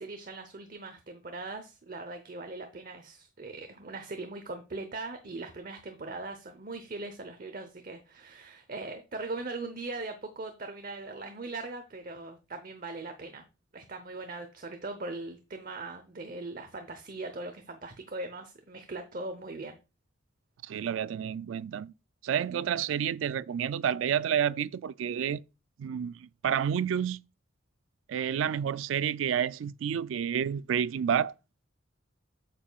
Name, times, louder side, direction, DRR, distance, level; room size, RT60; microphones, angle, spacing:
voice 1, 0.0-13.4 13.7-19.8 22.5-22.6, right 2 dB, 45° right, 0.8 m, -40 dB
voice 2, 20.6-21.9 22.2-25.4 25.8-27.2 28.1-31.3, right 8 dB, 75° right, 0.3 m, -29 dB
8.5 x 7.3 x 2.3 m
head